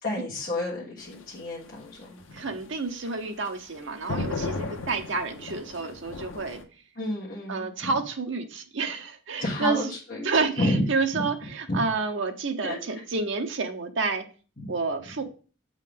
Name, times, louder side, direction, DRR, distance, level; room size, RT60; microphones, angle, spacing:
voice 1, 0.0-2.4 7.0-7.9 9.4-10.3 10.6-10.9 11.1-11.3 11.7-11.8 12.6-12.8, left 1 dB, 45° left, -6 dB, 1.5 m, -30 dB
sound 1, 1.0-6.6, left 3 dB, 90° left, 0.8 m, -36 dB
voice 2, 2.3-6.6 7.5-9.8 10.2-14.2 14.7-15.2, right 4 dB, 70° right, 6 dB, 0.7 m, -29 dB
7.4 x 3.7 x 3.6 m, 0.38 s
head